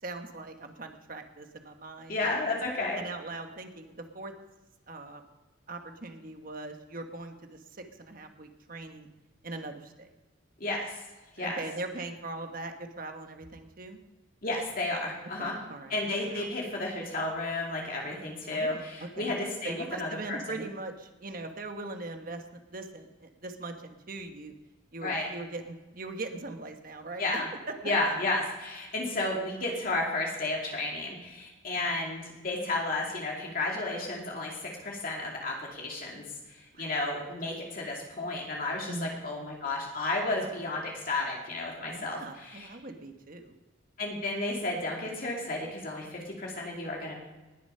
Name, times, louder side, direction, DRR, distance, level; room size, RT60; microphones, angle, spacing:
voice 1, 0.0-2.5 2.9-4.3 4.9-5.2 5.7-9.1 9.4-10.1 11.4-14.0 15.4-16.5 18.5-19.3 19.6-24.5 24.9-27.4 28.0-28.2 31.8-31.9 36.7-37.0 38.9-39.2 41.9-43.6, right 2 dB, 45° right, 6 dB, 1.3 m, -41 dB
voice 2, 2.1-3.0 10.6-11.0 11.4-11.6 14.4-15.5 15.9-20.4 25.0-25.3 27.2-27.5 27.8-36.2 36.5-42.7 44.0-47.1, left 2 dB, 45° left, -2 dB, 2.4 m, -32 dB
19.5 x 7.0 x 5.6 m, 1.1 s
head